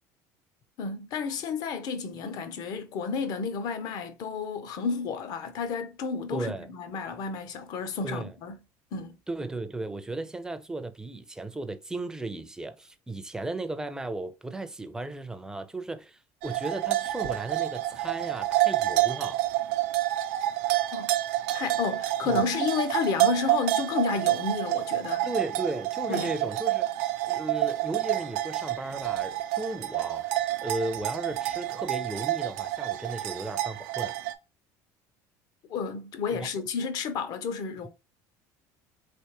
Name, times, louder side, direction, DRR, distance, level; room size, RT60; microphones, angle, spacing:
voice 1, 0.8-8.6 8.9-9.1 20.7-21.1 21.5-25.3 26.1-26.3 35.7-37.9, left 5 dB, 55° left, 0.7 m, -31 dB
voice 2, 6.3-6.7 8.0-8.3 9.3-19.4 22.2-22.4 25.2-26.9 27.2-30.3 30.6-34.1 36.3-36.5, right 2 dB, 10° right, 0.4 m, -35 dB
sound 1, 16.4-34.3, right 15 dB, 85° right, 0.4 m, -28 dB
3.4 x 2.8 x 2.9 m
cardioid pair, 120°, 8 cm